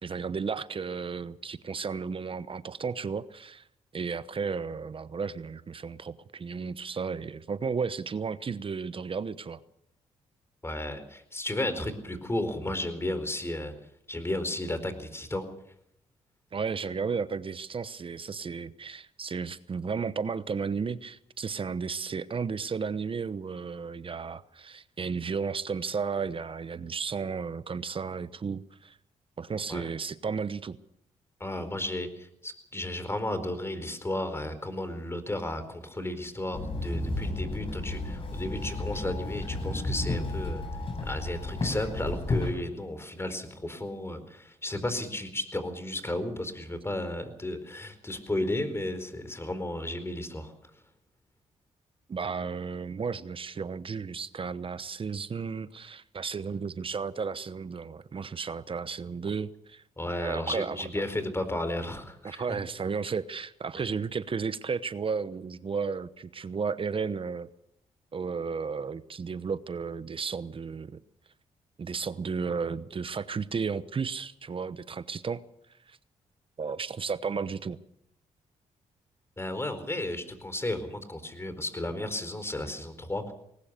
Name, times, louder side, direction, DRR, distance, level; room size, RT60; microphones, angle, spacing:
voice 1, 0.0-3.6 3.9-9.6 16.5-29.0 29.4-30.8 52.1-59.8 60.2-60.8 62.2-67.5 68.1-71.0 71.8-75.4 75.9-76.0 76.6-77.8, right 5 dB, 45° right, 15 dB, 1.0 m, -33 dB
voice 2, 10.6-13.7 14.1-15.5 29.7-29.9 31.4-40.6 41.0-50.5 60.0-62.6 79.4-83.3, left 1 dB, 20° left, 11 dB, 4.4 m, -33 dB
Walk footsteps / Chatter / Hiss, 36.5-42.5, left 2 dB, 45° left, 7.2 m, -32 dB
20.5 x 19.0 x 6.8 m, 0.75 s
supercardioid pair, 65°, 13 cm